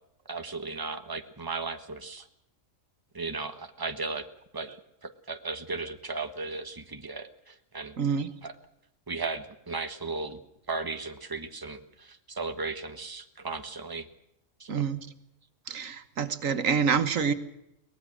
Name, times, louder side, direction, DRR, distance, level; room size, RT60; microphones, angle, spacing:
voice 1, 0.3-2.2 3.1-4.3 4.5-4.7 5.0-8.0 8.4-8.5 9.1-10.4 10.7-14.1 14.6-14.9, right 3 dB, 15° right, 7 dB, 1.5 m, -36 dB
voice 2, 8.0-8.3 14.7-15.1 15.7-17.3, right 6 dB, 85° right, 11 dB, 1.6 m, -27 dB
22.5 x 19.5 x 6.3 m, 0.80 s
omnidirectional pair, 1.3 m